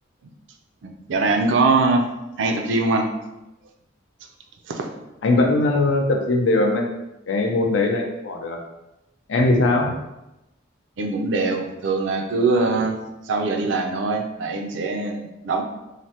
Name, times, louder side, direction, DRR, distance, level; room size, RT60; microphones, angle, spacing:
voice 1, 0.8-2.0 2.4-3.1 4.7-4.9 11.0-13.0 13.3-15.6, right 3 dB, 70° right, 4 dB, 0.4 m, -22 dB
voice 2, 5.2-6.9 7.3-8.6 9.3-9.9, left 2 dB, 75° left, 2 dB, 0.5 m, -20 dB
3.1 x 2.1 x 2.8 m, 0.94 s
head